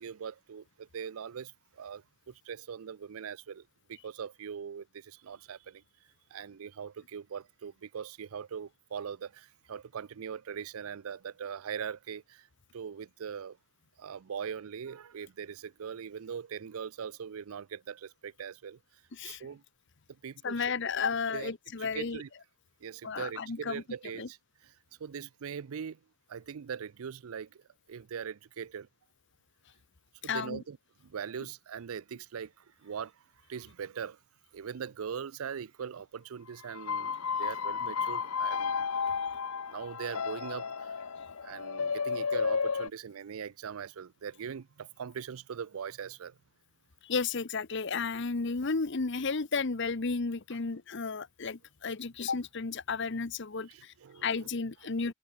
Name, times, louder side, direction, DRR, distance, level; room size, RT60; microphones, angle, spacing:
voice 1, 0.0-5.8 6.3-12.5 12.7-13.6 14.0-18.8 19.2-19.6 20.2-20.7 21.3-21.5 21.8-22.3 22.8-24.4 25.0-26.0 26.3-27.6 27.9-28.9 30.2-30.8 31.0-33.1 33.5-34.2 34.5-38.8 39.7-41.0 41.4-46.3 53.6-54.5 55.0-55.1, right 7 dB, 80° right, 0.5 m, -41 dB
voice 2, 19.1-19.4 20.4-22.2 23.0-23.8 24.2-24.3 30.2-30.6 47.0-53.9 54.2-55.1, left 4 dB, 55° left, 0.9 m, -33 dB
sound 1, 36.7-42.9, left 5 dB, 85° left, 0.9 m, -32 dB
head